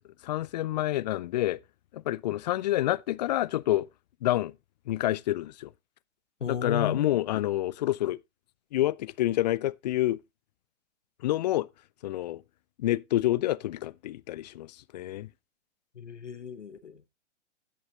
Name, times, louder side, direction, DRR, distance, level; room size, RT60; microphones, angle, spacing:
voice 1, 0.2-1.6 1.9-3.9 4.2-4.5 4.9-5.7 6.5-8.2 8.7-10.2 11.2-11.7 12.0-12.4 12.8-15.3, left 14 dB, 40° left, 0.5 m, -28 dB
voice 2, 6.4-7.2 15.9-17.1, left 7 dB, 80° left, 1.1 m, -34 dB
16.0 x 6.8 x 2.8 m
figure-of-eight pair, 110°, 36 cm